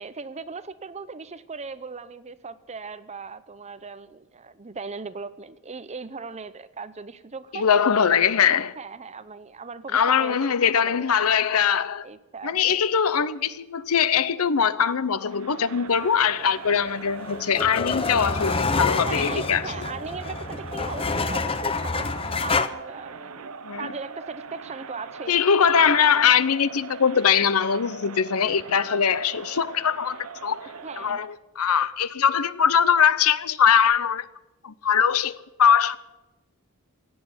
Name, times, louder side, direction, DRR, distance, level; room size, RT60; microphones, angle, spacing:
voice 1, 0.0-8.5 8.8-11.1 12.0-12.8 19.0-25.4 25.7-26.2 30.8-31.3, right 4 dB, 30° right, 0.7 m, -38 dB
voice 2, 7.5-8.7 9.9-12.1 12.4-19.6 23.6-23.9 25.3-30.6 31.0-34.3 34.6-36.0, left 7 dB, 80° left, 0.7 m, -21 dB
Crowd, 15.2-31.4, right 5 dB, 75° right, 0.8 m, -41 dB
sound 1, 16.8-22.7, left 4 dB, 25° left, 0.7 m, -27 dB
16.5 x 8.4 x 9.6 m
head